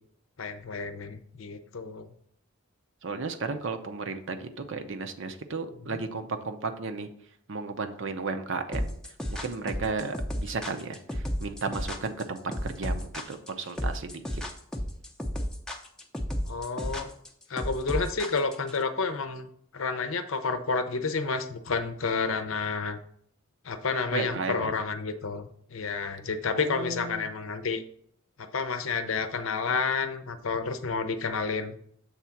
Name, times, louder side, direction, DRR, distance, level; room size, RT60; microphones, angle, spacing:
voice 1, 0.4-2.1 5.8-6.0 16.4-17.1 17.5-19.5 19.7-23.0 23.6-27.8 28.4-31.7, left 4 dB, 65° left, 9 dB, 0.7 m, -30 dB
voice 2, 3.0-7.1 7.5-8.9 9.3-14.4 24.1-24.7 26.5-27.3, right 4 dB, 60° right, 7 dB, 0.7 m, -34 dB
sound 1, 8.7-18.8, equal, 5° left, 0.6 m, -32 dB
7.2 x 3.6 x 5.8 m, 0.66 s
head